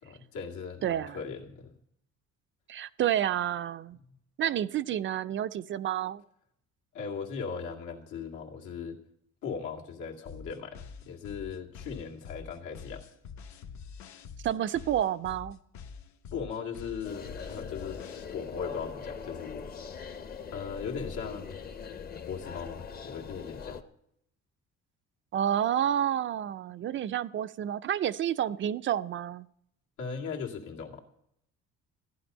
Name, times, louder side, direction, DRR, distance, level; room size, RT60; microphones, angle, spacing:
voice 1, 0.0-1.7 6.9-9.0 9.4-13.1 16.3-18.0 18.3-19.7 20.5-21.6 22.3-23.8 30.0-31.0, left 6 dB, 85° left, 0 dB, 2.3 m, -38 dB
voice 2, 0.8-1.2 2.7-4.0 4.4-6.2 14.4-15.6 25.3-29.5, right 10 dB, 40° right, 14 dB, 0.4 m, -29 dB
sound 1, 10.2-18.2, left 6 dB, 70° left, 1.1 m, -46 dB
sound 2, 17.0-23.8, left 6 dB, 30° left, 0.8 m, -41 dB
14.5 x 10.5 x 5.5 m, 0.73 s
cardioid pair, 160°, 30 cm